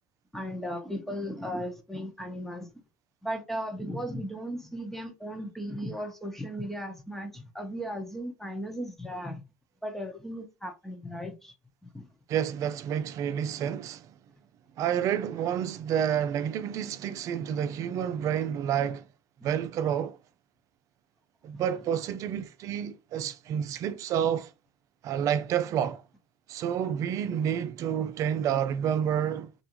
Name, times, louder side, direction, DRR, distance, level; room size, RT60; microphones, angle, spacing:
voice 1, 0.3-2.7 3.2-9.4 9.8-11.5 11.8-12.1 21.5-21.6, equal, 5° left, 1.0 m, -36 dB
voice 2, 12.3-14.1 14.8-19.1 19.4-20.2 21.4-24.5 25.0-26.0 26.5-29.5, right 9 dB, 55° right, 0.5 m, -29 dB
3.3 x 2.6 x 2.9 m
hypercardioid pair, 75°, 7 cm